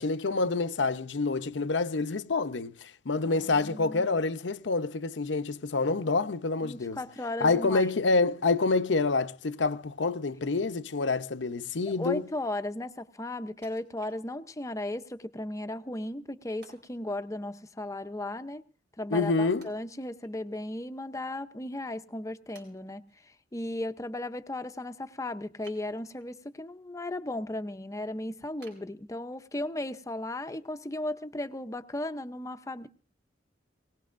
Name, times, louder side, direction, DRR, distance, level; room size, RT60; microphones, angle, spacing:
voice 1, 0.0-7.0 7.4-12.2 19.1-19.7, left 3 dB, 80° left, 0.7 m, -27 dB
voice 2, 3.2-4.1 6.6-7.9 11.9-18.6 19.0-32.9, left 1 dB, 20° left, 0.6 m, -36 dB
Wood, 13.6-14.7 15.2-15.3 16.6-17.0 19.6-20.7 21.1-21.2 21.8-21.9 22.5-23.2 25.6-26.4 26.8-27.3 27.7-27.8 28.6-29.6 30.1-30.2, right 4 dB, 70° right, 4.2 m, -58 dB
22.0 x 19.0 x 2.5 m
head